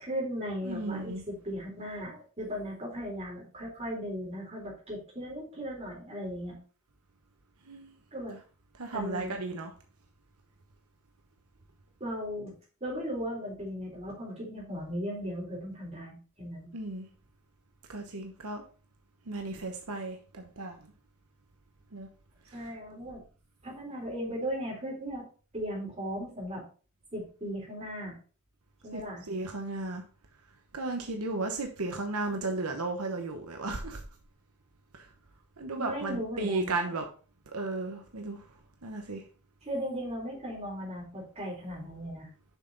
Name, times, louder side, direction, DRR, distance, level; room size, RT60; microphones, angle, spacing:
voice 1, 0.0-6.6 8.1-8.4 8.9-9.4 12.0-12.5 12.8-16.7 22.5-23.2 23.6-25.3 25.5-26.6 27.1-28.1 28.8-29.3 35.8-36.8 39.6-42.3, equal, 30° right, 3.9 m, -37 dB
voice 2, 0.6-1.2 7.7-7.9 8.8-9.7 16.7-17.1 17.9-18.6 19.3-20.8 21.9-22.1 22.5-22.6 28.9-30.0 30.7-34.0 34.9-35.1 35.6-37.0 37.5-38.4 38.8-39.2, right 2 dB, 80° right, 1.0 m, -34 dB
7.1 x 6.0 x 3.9 m
head